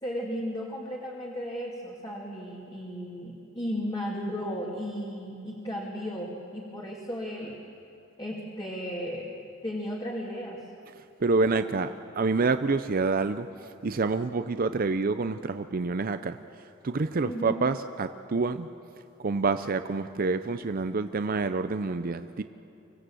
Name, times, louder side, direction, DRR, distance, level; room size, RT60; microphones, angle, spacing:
voice 1, 0.0-7.6 8.2-9.3 9.6-10.6 11.4-11.6 17.2-17.7, equal, 25° left, -3 dB, 2.5 m, -35 dB
voice 2, 11.2-13.5 13.8-16.4 16.8-18.7 19.2-22.4, right 3 dB, 45° right, 10 dB, 0.5 m, -27 dB
25.0 x 17.5 x 7.8 m, 3.0 s
head